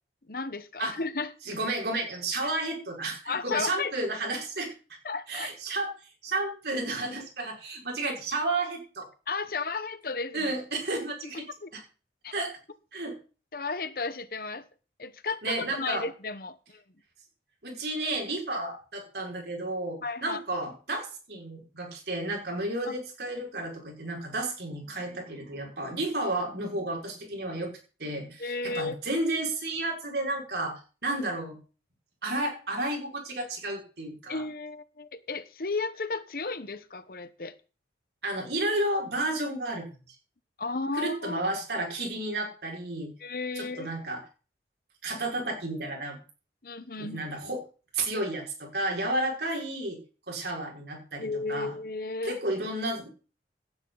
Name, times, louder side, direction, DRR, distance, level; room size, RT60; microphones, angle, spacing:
voice 1, 0.3-1.3 2.4-2.5 3.3-3.9 5.0-5.5 9.3-10.5 11.3-11.7 12.2-12.3 13.5-14.7 15.0-16.8 20.0-20.4 22.8-22.9 28.4-29.0 34.3-37.5 40.6-41.4 43.2-43.9 46.6-47.2 51.2-52.4, left 3 dB, 55° left, 13 dB, 1.1 m, -34 dB
voice 2, 1.5-4.7 5.3-5.9 6.2-9.1 10.3-11.4 11.7-11.8 12.3-12.6 12.9-13.2 15.4-16.0 17.6-27.7 28.0-31.6 32.2-34.4 38.2-39.9 40.9-43.1 43.6-44.2 45.0-46.2 47.0-47.6 47.9-50.0 50.3-51.7 52.2-53.1, right 2 dB, 70° right, 0 dB, 5.6 m, -32 dB
17.5 x 10.5 x 4.0 m, 0.36 s
head